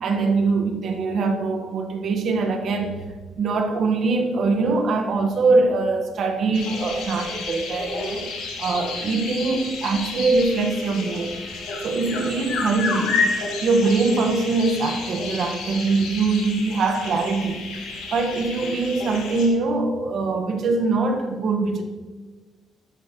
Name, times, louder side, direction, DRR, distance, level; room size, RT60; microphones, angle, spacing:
voice 1, 0.0-3.1 3.3-8.3 8.6-11.3 11.8-13.2 13.6-17.6 18.1-21.8, right 3 dB, 65° right, 4 dB, 1.6 m, -22 dB
sound 1, 6.5-19.5, left 4 dB, 90° left, 2.6 m, -31 dB
13.0 x 11.0 x 3.2 m, 1.3 s
cardioid pair, 90°, 0 cm